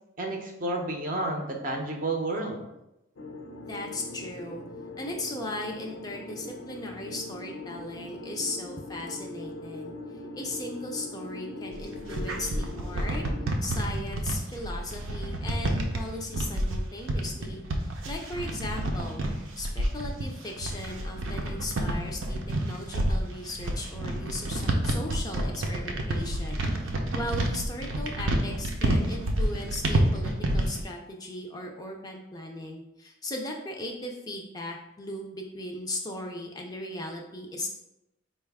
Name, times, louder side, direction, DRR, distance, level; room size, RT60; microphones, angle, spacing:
voice 1, 0.2-2.6, right 2 dB, 45° right, 2 dB, 0.6 m, -31 dB
sound 1, 3.2-13.5, left 2 dB, 85° left, 0.5 m, -41 dB
voice 2, 3.6-4.6 5.0-13.2 13.6-17.6 18.1-19.3 19.6-22.4 22.6-37.7, left 1 dB, 20° left, 1 dB, 0.4 m, -37 dB
sound 2, 11.7-30.8, right 1 dB, 85° right, 0.6 m, -29 dB
4.6 x 2.2 x 3.4 m, 0.89 s
head